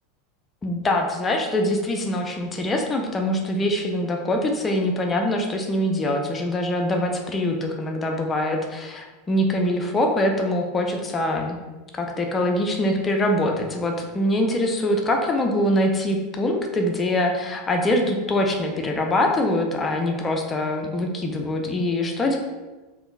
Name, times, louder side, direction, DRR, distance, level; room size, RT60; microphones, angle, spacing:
voice 1, 0.6-11.6 11.9-22.4, left 1 dB, 25° left, 2 dB, 0.4 m, -23 dB
3.5 x 2.6 x 2.4 m, 1.2 s
figure-of-eight pair, 80°, 0 cm